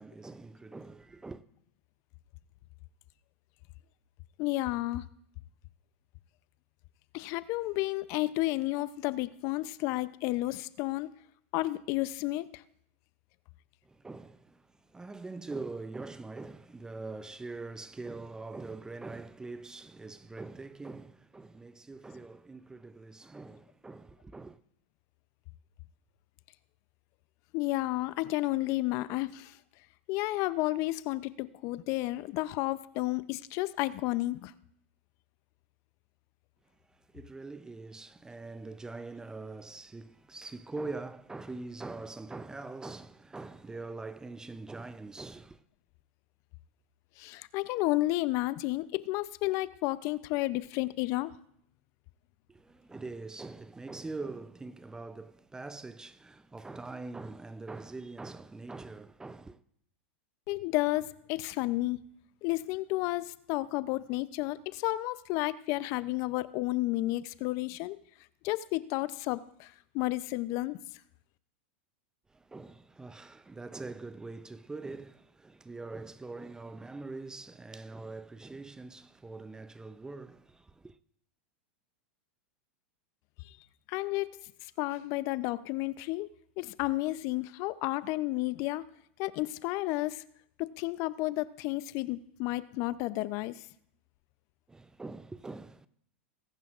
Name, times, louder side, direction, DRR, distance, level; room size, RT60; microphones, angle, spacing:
voice 1, 0.0-1.4 13.8-24.6 36.9-45.6 52.5-59.6 72.3-81.0 94.7-95.9, right 3 dB, 10° right, 0.5 m, -43 dB
voice 2, 4.4-5.1 7.1-11.1 11.5-12.6 27.5-29.6 30.1-34.5 47.2-51.3 60.5-62.0 62.4-68.0 68.4-70.8 83.4-83.5 83.9-86.3 86.6-88.8 89.2-90.2 90.6-93.6, left 19 dB, 50° left, 0.5 m, -32 dB
20.5 x 10.5 x 2.4 m
hypercardioid pair, 110°, 6 cm